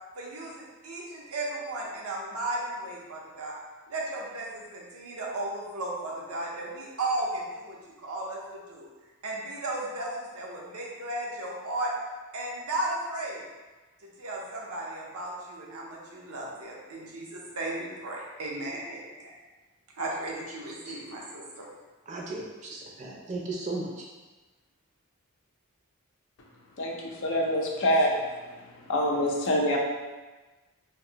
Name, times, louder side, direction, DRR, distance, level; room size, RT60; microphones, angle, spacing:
voice 1, 0.2-3.6 3.9-8.9 9.2-11.9 12.3-13.4 14.2-19.3 20.0-21.7, right 2 dB, 70° right, -3 dB, 0.7 m, -35 dB
voice 2, 22.1-24.1, right 2 dB, 35° right, -3 dB, 0.6 m, -36 dB
voice 3, 26.8-28.1 28.9-29.8, equal, 60° left, -1 dB, 0.5 m, -25 dB
2.6 x 2.2 x 3.8 m, 1.2 s
head